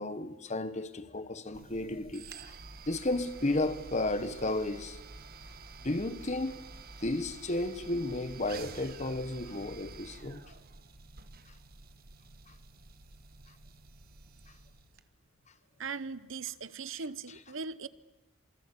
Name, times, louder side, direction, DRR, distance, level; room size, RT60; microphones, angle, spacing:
voice 1, 0.0-2.5 2.9-5.0 5.8-6.6 7.0-10.4 12.5-12.6, left 2 dB, 35° left, 1.3 m, -33 dB
sound 1, 1.5-15.0, right 3 dB, 45° right, 1.4 m, -49 dB
voice 2, 15.8-17.9, right 5 dB, 65° right, 0.9 m, -39 dB
26.5 x 24.0 x 8.4 m
head